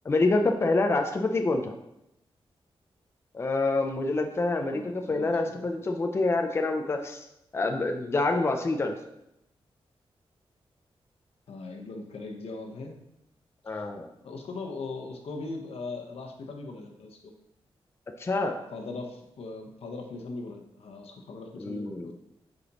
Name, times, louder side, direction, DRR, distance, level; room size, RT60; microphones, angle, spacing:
voice 1, 0.0-1.7 3.3-7.3 7.5-8.9 13.7-14.1 18.2-18.6 21.6-22.1, left 2 dB, 25° left, 4 dB, 0.5 m, -27 dB
voice 2, 4.7-5.7 11.5-13.0 13.7-13.8 14.2-17.3 18.7-22.1, left 3 dB, 85° left, 3 dB, 1.0 m, -39 dB
7.8 x 5.0 x 3.0 m, 0.84 s
wide cardioid pair, 160°, 10 cm